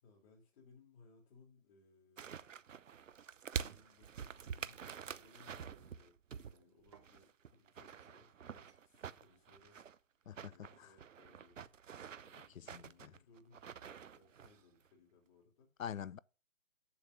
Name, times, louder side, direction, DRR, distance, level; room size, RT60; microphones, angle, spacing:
voice 1, 0.0-2.6 3.6-9.8 10.4-11.7 12.2-15.7, left 4 dB, 30° left, 2.9 m, -66 dB
sound 1, 2.2-6.6 6.9-10.0 10.3-14.6 14.9-15.0, right 7 dB, 65° right, 0.8 m, -47 dB
sound 2, 5.7-5.9 6.5-7.2 7.9-8.2 8.7-8.9, right 6 dB, 20° right, 0.6 m, -70 dB
voice 2, 10.3-10.9 12.5-13.1 15.8-16.2, left 9 dB, 75° left, 0.6 m, -45 dB
7.2 x 6.7 x 6.4 m
figure-of-eight pair, 150°, 41 cm